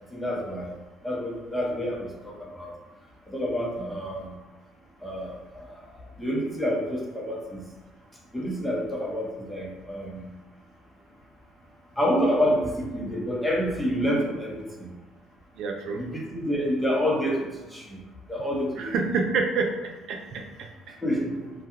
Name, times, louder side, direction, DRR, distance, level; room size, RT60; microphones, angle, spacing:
voice 1, 0.1-0.7 1.0-2.7 3.3-4.4 5.0-7.6 8.3-10.3 12.0-14.9 16.0-18.0 18.3-18.9 21.0-21.5, equal, 5° left, -3 dB, 0.8 m, -28 dB
voice 2, 15.6-16.0 18.8-21.0, right 4 dB, 65° right, 2 dB, 0.4 m, -28 dB
2.3 x 2.2 x 2.9 m, 1.2 s
hypercardioid pair, 60°, 0 cm